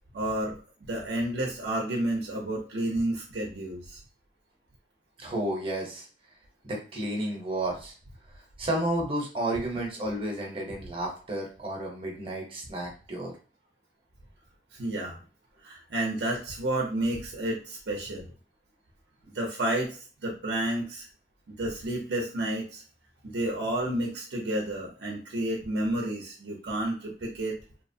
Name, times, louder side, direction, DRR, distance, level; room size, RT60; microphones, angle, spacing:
voice 1, 0.1-4.0 14.8-15.2 15.6-18.3 19.3-21.1 21.5-22.8 23.2-27.5, right 1 dB, 70° right, -1 dB, 0.6 m, -31 dB
voice 2, 5.2-6.0 6.6-7.9 8.6-13.3, right 1 dB, 30° right, 0 dB, 0.8 m, -31 dB
2.8 x 2.0 x 2.6 m, 0.39 s
head